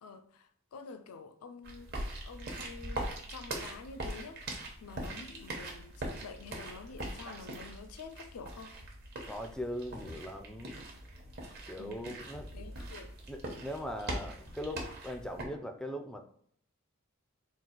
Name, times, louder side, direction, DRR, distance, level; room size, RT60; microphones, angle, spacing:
voice 1, 0.0-1.9 2.2-4.4 4.8-8.7 11.8-12.3 12.5-13.2, left 5 dB, 85° left, 0.4 m, -48 dB
sound 1, 1.6-15.4, right 1 dB, 45° right, 0.9 m, -42 dB
voice 2, 9.3-10.8 11.7-12.5 13.3-16.2, equal, 5° left, 0.3 m, -40 dB
3.8 x 2.4 x 4.4 m
head